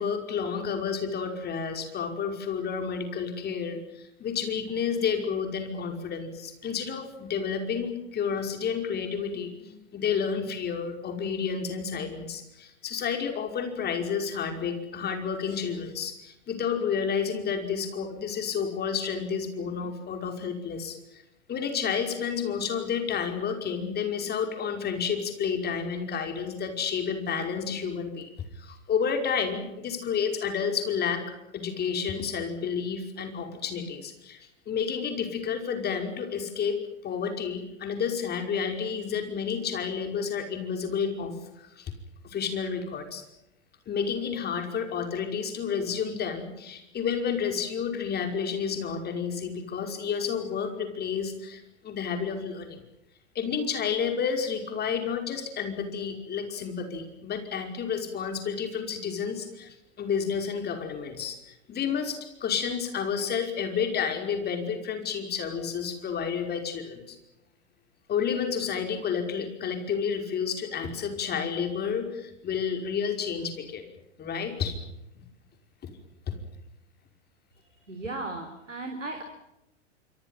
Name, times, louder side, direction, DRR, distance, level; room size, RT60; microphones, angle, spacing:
voice 1, 0.0-21.2 21.5-28.3 28.6-31.2 31.5-36.8 37.0-41.9 42.2-43.2 43.9-52.8 53.4-61.4 61.7-67.2 68.1-73.8 74.2-74.8 75.2-75.3 76.3-76.4, left 6 dB, 25° left, 5 dB, 5.4 m, -30 dB
voice 2, 77.9-79.2, right 2 dB, 90° right, 5 dB, 4.0 m, -36 dB
26.5 x 25.5 x 5.8 m, 0.89 s
figure-of-eight pair, 100°, 37 cm